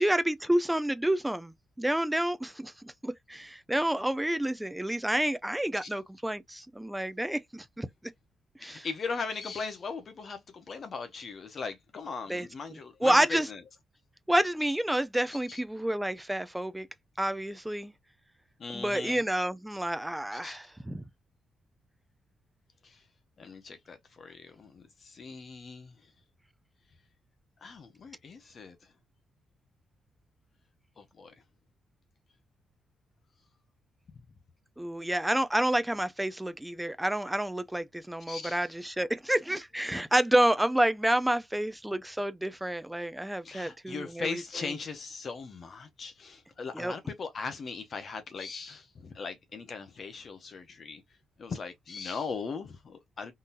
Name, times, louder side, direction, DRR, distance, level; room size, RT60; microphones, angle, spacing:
voice 1, 0.0-7.9 8.6-8.9 12.3-13.5 14.3-16.9 17.2-17.9 18.7-21.1 34.8-44.7 46.7-46.9, right 1 dB, 5° right, 0.3 m, -29 dB
voice 2, 8.6-13.6 15.5-15.6 18.6-19.2 20.3-20.6 22.8-23.0 23.4-26.1 27.6-28.8 31.0-31.3 38.3-38.7 43.4-51.0 51.4-53.3, left 4 dB, 35° left, 0.6 m, -39 dB
3.7 x 2.7 x 2.4 m
wide cardioid pair, 170°, 0 cm